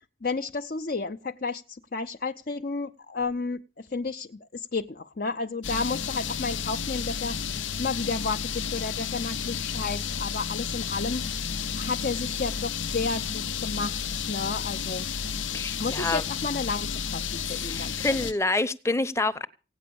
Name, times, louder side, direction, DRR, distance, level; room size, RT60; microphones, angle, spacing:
voice 1, 0.2-7.4 7.8-11.3 11.8-15.1 15.8-18.3, left 4 dB, 45° left, 0.7 m, -32 dB
sound 1, 5.6-18.3, left 7 dB, 85° left, 0.8 m, -32 dB
voice 2, 15.5-16.2 17.4-19.5, left 2 dB, 15° left, 0.8 m, -27 dB
17.5 x 9.4 x 7.0 m
head